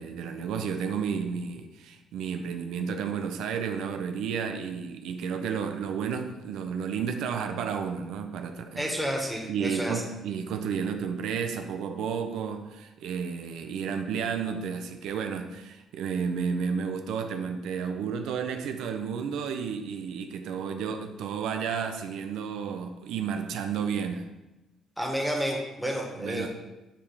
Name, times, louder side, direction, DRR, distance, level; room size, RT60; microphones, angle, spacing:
voice 1, 0.0-8.9 9.5-24.3 26.2-26.5, right 6 dB, 85° right, 6 dB, 0.7 m, -32 dB
voice 2, 8.8-10.0 25.0-26.5, equal, ahead, 0 dB, 1.8 m, -30 dB
8.7 x 5.2 x 5.0 m, 1.0 s
cardioid pair, 120°, 0 cm